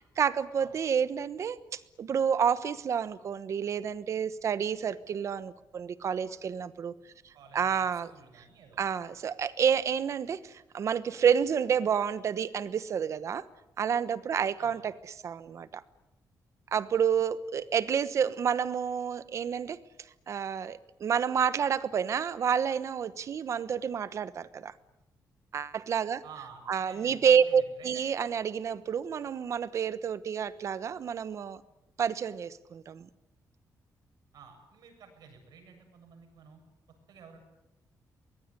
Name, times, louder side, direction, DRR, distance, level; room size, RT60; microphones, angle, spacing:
voice 1, 0.2-6.9 7.2-8.1 8.8-13.5 13.8-14.9 15.2-15.8 16.7-19.8 20.3-24.7 25.5-26.2 26.7-31.6 32.0-33.1, right 7 dB, 45° right, 15 dB, 1.1 m, -29 dB
voice 2, 7.3-8.8 14.6-14.9 26.2-28.2 34.3-36.6 37.1-37.4, right 6 dB, 75° right, 5 dB, 7.8 m, -52 dB
23.5 x 21.0 x 9.9 m, 0.91 s
wide cardioid pair, 170°, 7 cm